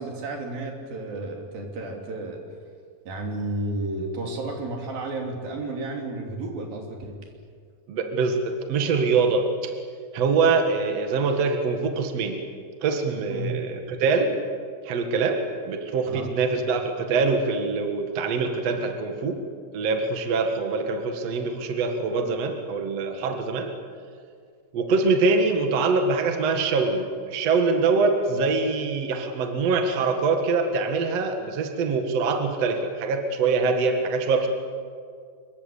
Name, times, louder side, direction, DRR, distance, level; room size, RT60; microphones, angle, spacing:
voice 1, 0.0-2.4 3.1-7.2 13.3-13.6 16.1-16.3, right 2 dB, 75° right, 2 dB, 4.8 m, -32 dB
voice 2, 7.9-9.7 10.1-12.4 12.8-14.4 14.9-19.4 19.7-23.7 24.7-34.5, right 4 dB, 50° right, 5 dB, 2.7 m, -24 dB
26.0 x 22.5 x 8.6 m, 2.2 s
omnidirectional pair, 4.1 m